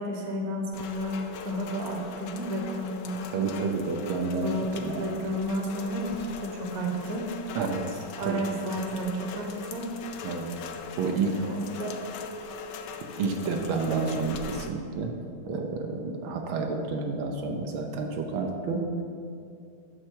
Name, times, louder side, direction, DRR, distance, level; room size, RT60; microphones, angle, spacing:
voice 1, 0.0-3.6 4.4-7.3 8.2-9.9 11.0-12.0, equal, 50° right, 1 dB, 1.4 m, -32 dB
Rain, 0.7-14.7, left 6 dB, 70° left, 1.1 m, -41 dB
voice 2, 3.3-4.5 4.8-5.1 7.5-8.4 10.2-10.5 11.0-11.3 13.2-15.2 15.4-19.0, right 4 dB, 80° right, 2 dB, 1.6 m, -30 dB
9.3 x 6.4 x 4.5 m, 2.4 s
omnidirectional pair, 2.2 m